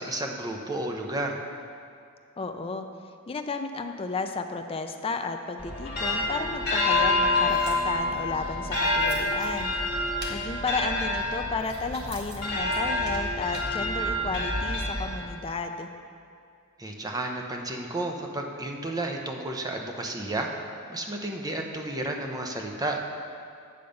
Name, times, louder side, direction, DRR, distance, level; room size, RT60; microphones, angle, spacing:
voice 1, 0.0-1.4 16.8-20.5 20.9-23.0, right 2 dB, 15° right, 2 dB, 0.7 m, -32 dB
voice 2, 2.4-2.9 3.3-9.8 10.3-15.9, left 4 dB, 25° left, 6 dB, 0.5 m, -33 dB
sound 1, 5.6-15.5, left 2 dB, 50° left, 1.6 m, -27 dB
sound 2, 6.9-8.2 8.6-9.8 10.2-10.4 11.1-12.4 12.7-13.7, right 3 dB, 50° right, 1.1 m, -45 dB
8.7 x 6.6 x 5.2 m, 2.4 s
head